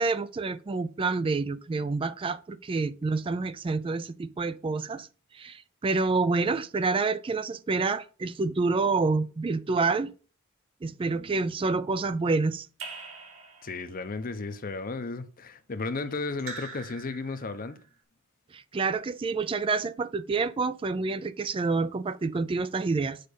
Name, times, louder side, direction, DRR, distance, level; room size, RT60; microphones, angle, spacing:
voice 1, 0.0-5.1 5.3-10.1 10.8-12.7 18.5-23.2, right 4 dB, 25° right, 0.3 m, -28 dB
Raindrop / Drip, 12.8-14.0 16.4-17.7, right 4 dB, 65° right, 2.7 m, -43 dB
voice 2, 13.6-17.8, left 3 dB, 45° left, 0.8 m, -34 dB
6.7 x 5.1 x 5.2 m
head